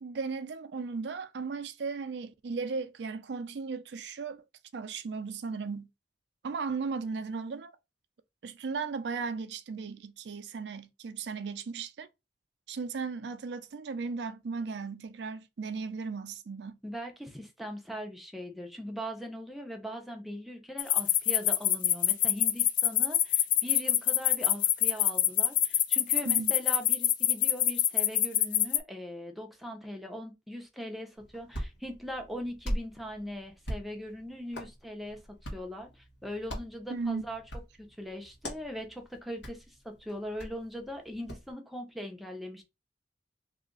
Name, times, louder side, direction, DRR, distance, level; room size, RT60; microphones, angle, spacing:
voice 1, 0.0-4.4 4.7-5.9 6.4-7.7 8.4-12.1 12.7-16.8 26.2-26.5 36.9-37.2, right 4 dB, 70° right, 0.4 m, -36 dB
voice 2, 16.8-35.2 35.5-37.4 38.0-42.6, equal, ahead, 0.6 m, -40 dB
sound 1, 20.8-28.8, left 12 dB, 45° left, 0.4 m, -24 dB
Hands, 31.2-41.5, equal, 90° left, 1.2 m, -42 dB
2.8 x 2.4 x 3.7 m
head